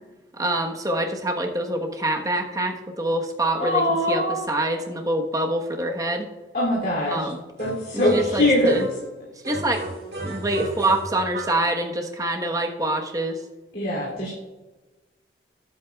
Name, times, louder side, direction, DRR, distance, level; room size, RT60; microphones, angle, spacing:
voice 1, 0.3-3.8 4.1-6.3 7.1-7.4 7.9-8.9 9.4-9.8 10.2-13.3 14.3-14.4, right 1 dB, 20° right, 2 dB, 1.1 m, -25 dB
voice 2, 3.6-4.4 6.5-7.3 7.6-8.8 13.7-14.3, left 1 dB, 55° left, -6 dB, 2.8 m, -22 dB
sound 1, 7.6-9.1 9.4-11.7, right 2 dB, 60° right, 2.2 m, -34 dB
18.5 x 8.4 x 2.3 m, 1.2 s
head